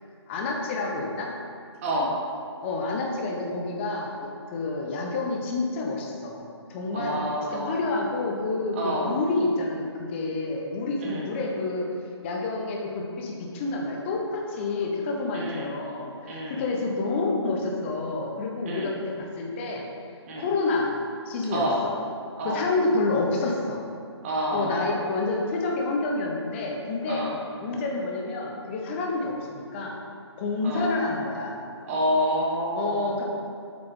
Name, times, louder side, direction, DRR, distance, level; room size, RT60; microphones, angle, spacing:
voice 1, 0.3-1.3 2.6-7.2 7.5-11.9 12.2-19.8 20.4-20.9 21.3-21.9 22.4-23.8 24.5-27.3 27.6-30.0 30.4-31.5 32.7-33.2, left 3 dB, 25° left, 0 dB, 1.1 m, -28 dB
voice 2, 1.8-2.1 6.9-7.9 8.7-9.1 11.0-11.3 15.3-15.7 16.2-16.7 18.6-18.9 20.3-20.5 21.5-21.8 22.4-22.7 24.2-24.9 27.1-27.4 30.6-30.9 31.8-33.1, equal, 30° right, -3 dB, 1.4 m, -28 dB
8.2 x 6.5 x 3.8 m, 2.4 s
figure-of-eight pair, 150°, 15 cm